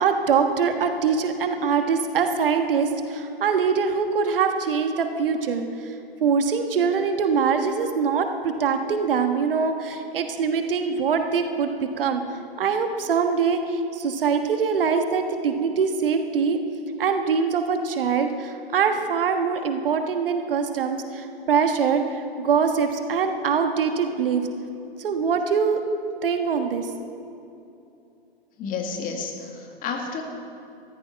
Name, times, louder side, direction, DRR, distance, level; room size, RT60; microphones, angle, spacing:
voice 1, 0.0-5.9 6.2-11.7 12.0-12.2 12.6-16.6 17.0-24.5 25.0-25.8 26.2-26.9, right 6 dB, 65° right, 6 dB, 1.4 m, -23 dB
voice 2, 28.6-30.2, left 5 dB, 25° left, 3 dB, 1.9 m, -31 dB
14.0 x 13.5 x 5.8 m, 2.7 s
figure-of-eight pair, 110°, 30 cm